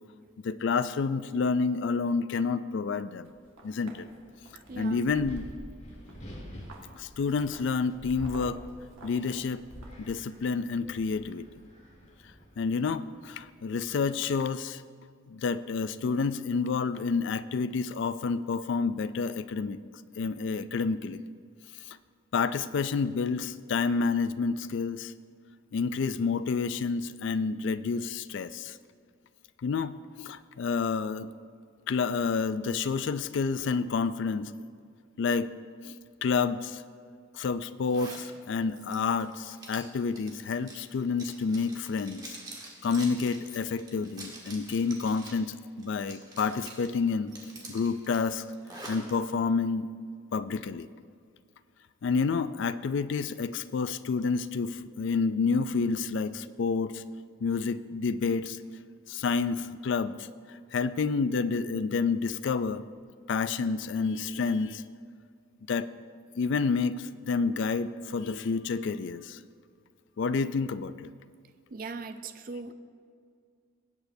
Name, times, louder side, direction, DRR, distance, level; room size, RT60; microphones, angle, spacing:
voice 1, 0.4-3.3 3.6-4.1 4.8-5.5 7.0-8.6 9.0-9.6 10.0-11.5 12.6-14.8 15.3-19.8 20.2-21.2 22.3-25.1 25.7-28.7 29.6-31.3 31.9-34.5 35.2-35.5 35.8-35.9 36.2-36.8 37.3-42.3 42.8-47.3 47.7-48.4 48.9-49.9 50.3-50.9 52.0-57.0 57.4-58.6 59.1-60.1 60.7-62.8 63.3-64.8 65.7-65.9 66.4-69.4 70.2-71.1, left 5 dB, 65° left, 14 dB, 0.3 m, -29 dB
sound 1, 3.2-4.0 4.5-4.7 5.0-6.1 6.4-10.1, right 1 dB, 90° right, 1.7 m, -46 dB
Wind, 4.0-13.6, equal, 35° left, 1.5 m, -52 dB
voice 2, 4.7-5.1 71.7-72.7, right 4 dB, 45° right, 9 dB, 0.4 m, -39 dB
Zipper (clothing), 37.9-38.3 38.7-45.4 45.8-46.9 47.3-49.1, right 2 dB, 20° right, 1.3 m, -46 dB
17.5 x 8.1 x 2.7 m, 2.2 s
head